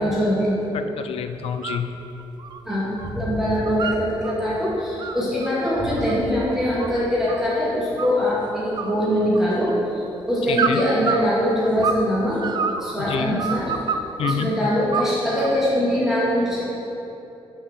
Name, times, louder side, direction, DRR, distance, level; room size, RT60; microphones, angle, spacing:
voice 1, 0.0-0.8 2.6-12.4 12.8-13.7 14.2-16.6, equal, 5° right, -9 dB, 2.2 m, -22 dB
voice 2, 0.7-1.9 10.5-10.8 13.0-13.4 14.2-14.5, left 7 dB, 75° left, 8 dB, 0.5 m, -28 dB
sound 1, 1.4-1.9 2.2-3.1 3.4-4.3 4.8-7.5 8.0-8.4 8.7-9.7 10.5-12.1 12.4-14.4 14.9-15.6, right 5 dB, 45° right, 0.4 m, -28 dB
6.9 x 5.6 x 7.4 m, 3.0 s
cardioid pair, 135°, 10 cm